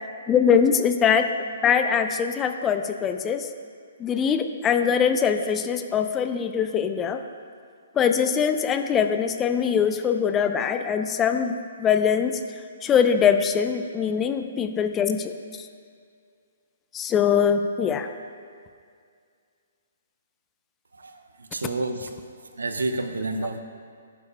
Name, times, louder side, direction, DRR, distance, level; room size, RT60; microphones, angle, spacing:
voice 1, 0.3-1.3 1.6-3.5 4.0-7.2 7.9-12.4 12.8-15.3 16.9-18.1, left 7 dB, 20° left, 7 dB, 0.6 m, -22 dB
voice 2, 21.0-22.1 22.5-23.6, right 2 dB, 75° right, 7 dB, 0.9 m, -29 dB
17.0 x 10.5 x 2.3 m, 2.2 s
figure-of-eight pair, 125°, 0 cm